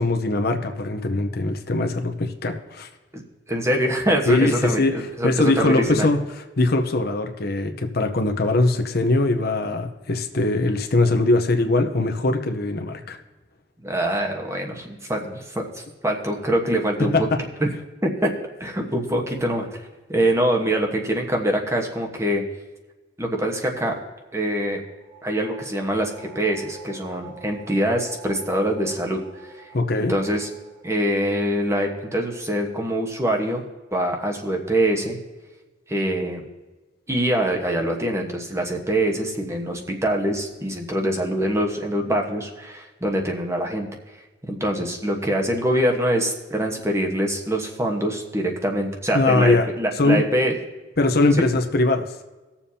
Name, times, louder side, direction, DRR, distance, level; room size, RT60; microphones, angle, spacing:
voice 1, 0.0-2.9 4.3-4.9 5.2-6.2 6.6-13.2 17.0-17.4 29.7-30.2 49.1-49.7 50.0-50.2 51.0-52.1, left 2 dB, 55° left, 5 dB, 0.9 m, -21 dB
voice 2, 3.5-6.1 13.8-17.1 17.6-17.7 18.0-18.3 18.6-19.7 20.1-22.4 23.2-23.9 24.3-24.8 25.2-29.7 30.1-30.5 30.8-33.6 33.9-35.2 35.9-36.4 37.1-43.9 44.5-50.6 51.3-51.4, right 1 dB, 15° right, 1 dB, 1.2 m, -24 dB
sound 1, 24.8-34.2, right 7 dB, 55° right, 2.3 m, -47 dB
19.0 x 7.2 x 2.8 m, 1.2 s
head